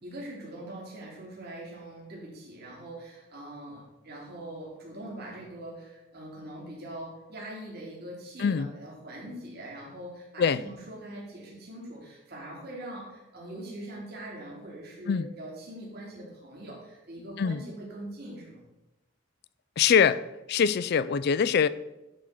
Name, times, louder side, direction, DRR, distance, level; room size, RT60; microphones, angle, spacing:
voice 1, 0.0-18.6, right 1 dB, 50° right, -4 dB, 2.6 m, -42 dB
voice 2, 19.8-20.2 20.5-21.7, left 7 dB, 55° left, 17 dB, 0.3 m, -23 dB
11.0 x 3.8 x 5.8 m, 0.96 s
head